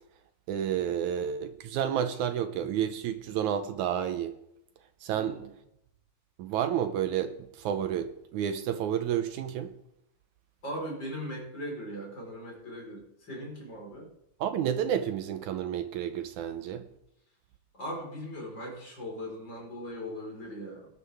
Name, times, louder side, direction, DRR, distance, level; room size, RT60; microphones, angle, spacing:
voice 1, 0.5-4.4 5.0-5.4 6.4-9.8 14.4-16.9, right 9 dB, 75° right, 1.8 m, -30 dB
voice 2, 5.1-5.5 10.6-14.1 17.7-20.9, equal, 30° left, 5.0 m, -39 dB
18.5 x 11.5 x 3.5 m
omnidirectional pair, 4.0 m